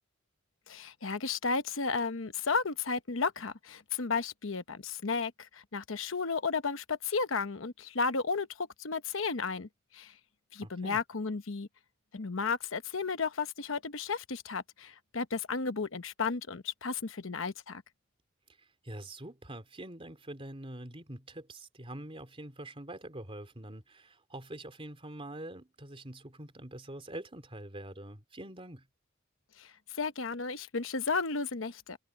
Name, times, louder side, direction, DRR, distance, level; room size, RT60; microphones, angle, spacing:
voice 1, 0.7-10.1 10.5-11.7 12.1-17.8 29.6-32.0, left 4 dB, 70° left, 1.0 m, -33 dB
voice 2, 10.6-11.0 18.6-28.9, right 1 dB, 25° right, 3.3 m, -45 dB
head